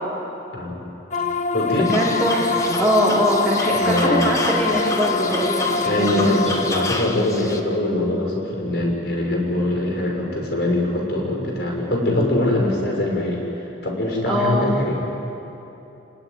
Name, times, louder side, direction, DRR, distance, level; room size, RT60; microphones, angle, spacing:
voice 1, 0.5-0.8 1.5-1.9 3.7-4.3 5.8-13.4 13.8-14.9, left 1 dB, 60° left, 0 dB, 6.0 m, -22 dB
sound 1, 1.1-6.9, left 4 dB, 40° left, 0.9 m, -25 dB
sound 2, 1.8-7.6, left 2 dB, 15° left, 1.3 m, -30 dB
voice 2, 1.9-6.6 14.3-14.7, equal, ahead, -6 dB, 3.2 m, -22 dB
27.5 x 19.0 x 9.7 m, 3.0 s
head